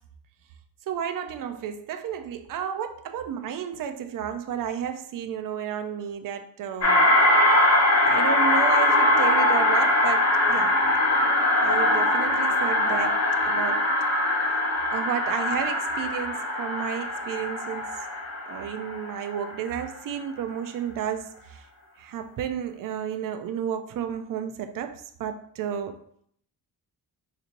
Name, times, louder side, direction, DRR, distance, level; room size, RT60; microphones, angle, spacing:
voice 1, 0.9-7.1 7.5-7.6 8.0-10.7 11.6-13.9 14.9-17.9 18.5-21.6 22.0-26.0, right 8 dB, 55° right, 0.4 m, -32 dB
sound 1, 6.8-19.5, left 1 dB, 40° left, 1.0 m, -22 dB
4.1 x 2.9 x 2.5 m
cardioid pair, 120°, 40 cm